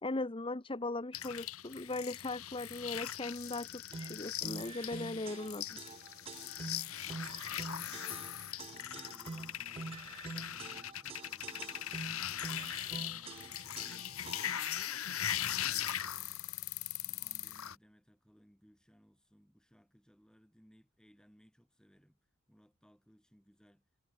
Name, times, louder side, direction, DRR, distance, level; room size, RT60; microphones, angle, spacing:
voice 1, 0.0-5.8, left 2 dB, 25° left, 0.9 m, -39 dB
sound 1, 1.1-17.7, left 11 dB, 85° left, 1.9 m, -40 dB
sound 2, 3.9-14.8, right 3 dB, 25° right, 0.4 m, -47 dB
voice 2, 7.0-8.1 8.7-16.5 17.0-22.2 22.5-23.9, equal, 5° left, 7.8 m, -64 dB
head